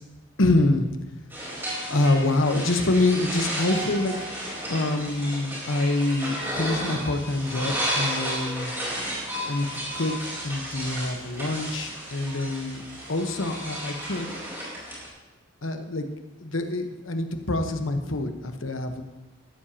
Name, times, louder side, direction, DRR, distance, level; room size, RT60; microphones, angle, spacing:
voice 1, 0.4-0.9 1.9-4.1 4.7-8.7 9.5-12.8 13.1-14.4 15.6-16.1 16.4-19.0, left 2 dB, 90° left, 6 dB, 1.2 m, -26 dB
sound 1, 1.3-15.1, equal, 10° right, 3.9 m, -33 dB
15.0 x 12.5 x 2.9 m, 1.1 s
head